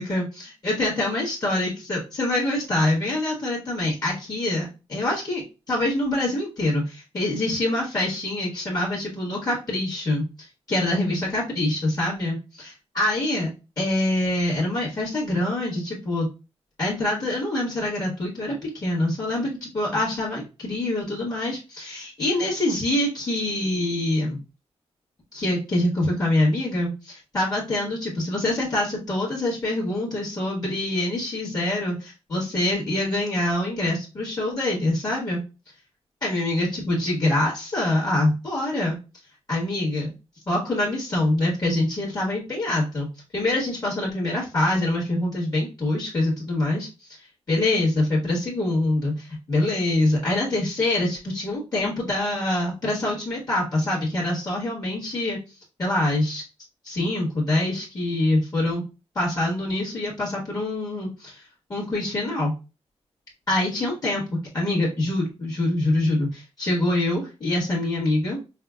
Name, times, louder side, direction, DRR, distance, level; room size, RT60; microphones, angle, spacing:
voice 1, 0.0-10.2 10.7-13.5 13.8-16.3 16.8-24.4 25.3-35.4 36.2-39.0 39.5-40.1 40.5-43.1 43.3-47.1 47.5-55.4 55.8-56.4 56.8-58.8 59.1-61.4 61.7-62.5 63.5-64.2 64.5-68.4, left 1 dB, 35° left, -4 dB, 1.4 m, -25 dB
5.6 x 2.1 x 2.3 m, 0.30 s
wide cardioid pair, 160°, 11 cm